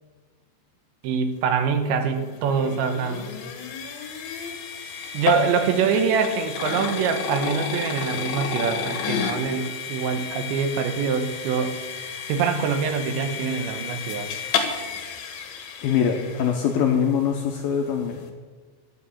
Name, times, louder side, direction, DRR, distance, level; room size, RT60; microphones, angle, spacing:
voice 1, 1.0-3.3 5.1-11.8 12.3-14.3, right 6 dB, 80° right, 7 dB, 3.3 m, -24 dB
sound 1, 1.8-17.0, left 5 dB, 65° left, 2.9 m, -31 dB
voice 2, 15.8-18.2, left 7 dB, 80° left, 2 dB, 2.2 m, -23 dB
12.0 x 9.8 x 7.0 m, 1.4 s
omnidirectional pair, 5.2 m